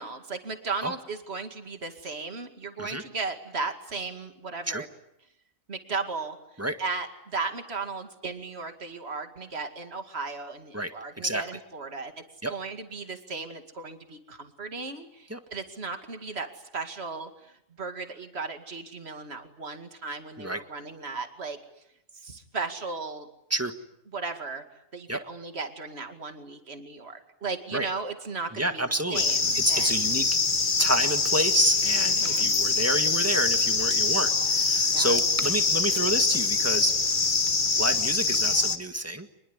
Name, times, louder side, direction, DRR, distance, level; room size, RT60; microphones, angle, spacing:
voice 1, 0.0-4.9 5.7-6.4 6.8-12.1 12.5-16.5 16.7-17.5 17.8-21.6 22.2-23.3 24.1-24.6 24.9-28.8 29.1-30.1 32.1-32.5 34.9-35.2, right 4 dB, 50° right, 6 dB, 2.6 m, -36 dB
voice 2, 10.7-11.4 12.4-12.5 15.3-15.4 20.4-20.6 23.5-23.7 25.1-25.2 27.7-27.9 28.5-29.2 29.5-30.3 30.8-37.0 37.8-39.3, right 1 dB, 10° right, 8 dB, 1.7 m, -28 dB
sound 1, 29.1-38.8, left 4 dB, 40° left, 1.3 m, -24 dB
26.0 x 21.5 x 9.8 m, 0.81 s
omnidirectional pair, 1.4 m